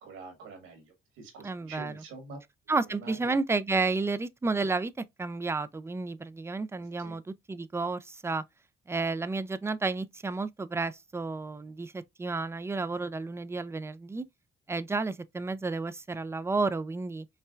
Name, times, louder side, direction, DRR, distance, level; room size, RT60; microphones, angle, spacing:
voice 1, 0.0-2.4 3.0-3.3 7.0-7.2, right 3 dB, 90° right, 1.9 m, -46 dB
voice 2, 1.4-1.9 2.7-4.9 5.2-8.4 8.9-14.2 14.7-17.3, right 3 dB, 15° right, 0.4 m, -31 dB
5.5 x 2.2 x 2.4 m
cardioid pair, 90°, 20 cm